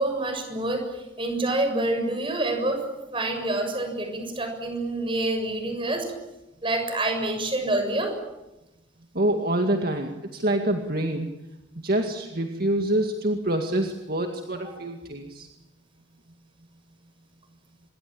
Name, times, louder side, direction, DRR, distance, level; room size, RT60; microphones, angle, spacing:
voice 1, 0.0-6.1 6.6-8.1 14.6-14.7, right 2 dB, 30° right, 5 dB, 7.1 m, -27 dB
voice 2, 9.1-11.3 11.8-15.5, right 1 dB, 50° right, 4 dB, 2.1 m, -26 dB
26.5 x 22.0 x 8.8 m, 0.97 s
head